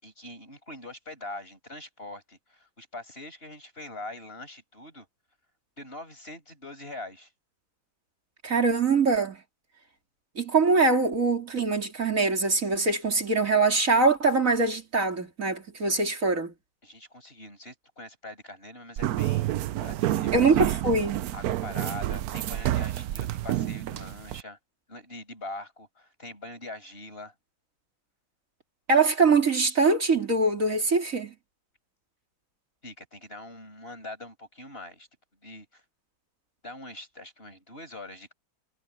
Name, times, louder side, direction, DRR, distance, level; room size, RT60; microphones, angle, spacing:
voice 1, 0.0-5.1 5.8-7.3 16.8-20.3 20.6-20.8 21.3-24.6 24.9-27.3 32.8-35.1 35.4-35.8 36.6-38.3, left 2 dB, 25° left, 7.0 m, -43 dB
voice 2, 8.4-9.4 10.4-16.5 20.3-21.2 28.9-31.3, right 3 dB, 40° right, 3.4 m, -23 dB
sound 1, 19.0-24.4, right 13 dB, 75° right, 0.8 m, -29 dB
omnidirectional pair, 2.2 m